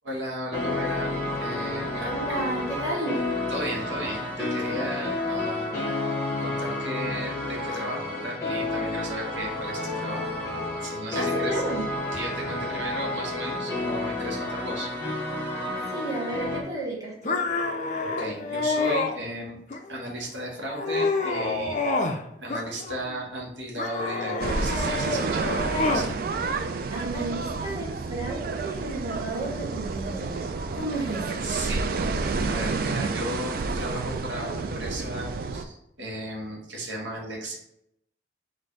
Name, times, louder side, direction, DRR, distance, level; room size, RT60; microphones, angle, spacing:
voice 1, 0.0-2.1 3.5-5.9 6.4-10.3 10.8-11.6 12.1-14.9 18.0-19.6 19.9-21.8 22.4-26.1 31.4-37.6, right 1 dB, 80° right, -2 dB, 1.1 m, -35 dB
sound 1, 0.5-16.6, left 2 dB, 15° left, 1.1 m, -30 dB
voice 2, 2.0-3.2 11.1-11.9 15.9-17.4 26.9-30.4 30.7-31.5, right 2 dB, 20° right, -5 dB, 1.1 m, -32 dB
sound 2, 17.2-19.1 19.7-20.2 20.6-22.2 22.5-23.2 23.8-26.1, left 3 dB, 40° left, 0.4 m, -28 dB
sound 3, 24.4-35.6, right 4 dB, 50° right, 0.3 m, -30 dB
4.2 x 2.6 x 4.5 m, 0.79 s
head